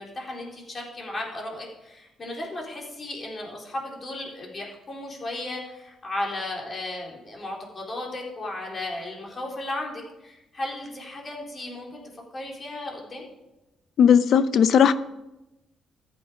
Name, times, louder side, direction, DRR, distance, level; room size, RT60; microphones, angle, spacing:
voice 1, 0.0-12.0 12.3-13.3, left 1 dB, 35° left, -1 dB, 4.0 m, -35 dB
voice 2, 14.0-14.9, left 8 dB, 65° left, 14 dB, 0.6 m, -17 dB
14.0 x 8.4 x 5.1 m, 0.97 s
cardioid pair, 90°, 0 cm